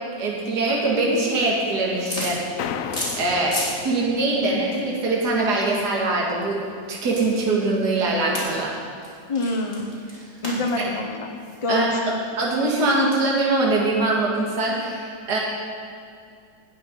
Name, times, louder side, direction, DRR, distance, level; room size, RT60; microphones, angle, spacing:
voice 1, 0.2-2.4 3.2-6.6 6.9-8.7 10.8-10.9 11.7-15.4, right 2 dB, 60° right, -3 dB, 2.4 m, -23 dB
sound 1, 1.9-3.8 4.1-12.3, left 1 dB, 20° left, 3.3 m, -35 dB
sound 2, 2.6-5.0, left 8 dB, 75° left, 0.7 m, -34 dB
voice 2, 9.3-9.9 10.4-11.2 11.6-12.2, left 2 dB, 50° left, 2 dB, 0.3 m, -26 dB
18.5 x 6.8 x 5.5 m, 2.3 s
omnidirectional pair, 2.1 m